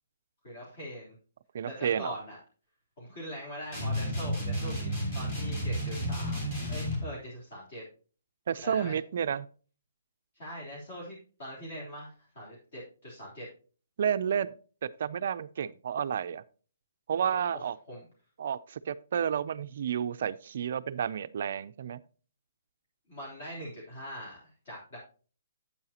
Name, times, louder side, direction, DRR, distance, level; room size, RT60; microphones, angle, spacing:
voice 1, 0.4-1.1 1.7-2.4 3.0-7.8 8.6-9.0 10.3-13.5 17.3-18.0 23.1-25.0, equal, 40° left, -5 dB, 3.3 m, -42 dB
voice 2, 1.5-2.2 8.5-9.5 14.0-14.5 14.8-16.4 17.1-17.8 18.4-22.0, right 8 dB, 45° right, 12 dB, 0.3 m, -31 dB
sound 1, 3.7-7.1, equal, 25° left, 2.9 m, -32 dB
8.8 x 8.5 x 2.8 m, 0.38 s
hypercardioid pair, 175°, 0 cm